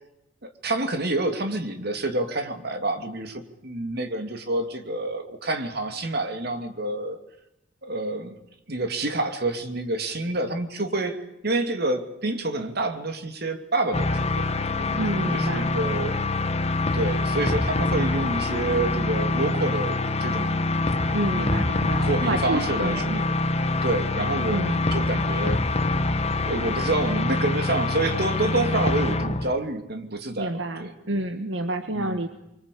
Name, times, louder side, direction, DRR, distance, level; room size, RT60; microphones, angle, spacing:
voice 1, 0.4-7.2 7.8-8.4 8.7-14.5 14.8-16.2 16.9-20.6 21.3-23.3 23.8-24.6 24.9-25.9 26.5-30.9 32.0-32.2, right 2 dB, 55° right, 7 dB, 2.8 m, -28 dB
sound 1, 13.9-29.5, left 2 dB, 35° left, 1.3 m, -25 dB
voice 2, 15.0-15.7 21.1-23.2 24.5-24.8 30.4-32.3, right 1 dB, 75° right, 8 dB, 1.6 m, -29 dB
24.5 x 24.5 x 8.6 m, 0.87 s
head